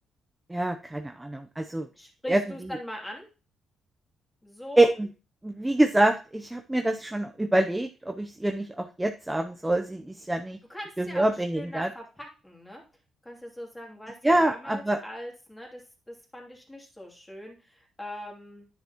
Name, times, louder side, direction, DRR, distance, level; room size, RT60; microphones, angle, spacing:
voice 1, 0.5-1.9 2.3-2.4 4.8-5.1 5.4-10.6 11.0-11.9 14.2-15.0, right 1 dB, 10° right, 5 dB, 0.6 m, -25 dB
voice 2, 1.9-3.3 4.4-4.9 10.7-11.3 11.5-12.8 13.2-18.7, left 1 dB, 10° left, 0 dB, 2.8 m, -41 dB
10.0 x 7.0 x 2.9 m, 0.33 s
cardioid pair, 90°, 0 cm